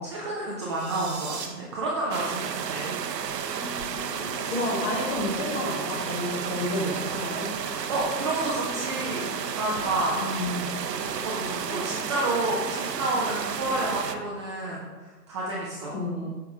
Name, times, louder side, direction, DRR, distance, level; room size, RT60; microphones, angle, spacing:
voice 1, 0.0-3.0 4.2-4.5 7.9-9.3 9.6-10.2 11.0-16.0, right 2 dB, 20° right, -5 dB, 0.6 m, -30 dB
sound 1, 0.6-1.5, right 6 dB, 40° right, 1.2 m, -38 dB
sound 2, 2.1-14.2, right 7 dB, 75° right, 0.7 m, -32 dB
sound 3, 3.6-13.2, left 2 dB, ahead, 1.2 m, -44 dB
voice 2, 4.5-7.5 10.2-10.8 11.7-11.9 15.9-16.3, left 1 dB, 15° left, 0 dB, 1.0 m, -30 dB
7.7 x 5.9 x 3.6 m, 1.3 s
figure-of-eight pair, 130°, 50 cm